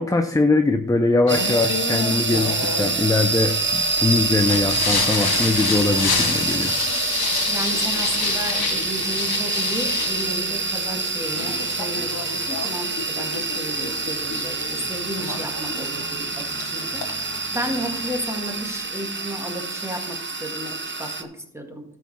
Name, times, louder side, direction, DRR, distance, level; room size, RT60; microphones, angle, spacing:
voice 1, 0.0-6.7, left 2 dB, 10° left, 6 dB, 0.5 m, -21 dB
Singing, 1.3-18.2, left 5 dB, 75° left, 1.2 m, -30 dB
sound 1, 1.3-21.2, right 3 dB, 30° right, 0.8 m, -26 dB
voice 2, 7.5-17.0 17.5-21.8, equal, 5° right, 2 dB, 1.8 m, -33 dB
13.0 x 6.5 x 4.2 m, 0.69 s
wide cardioid pair, 110°, 37 cm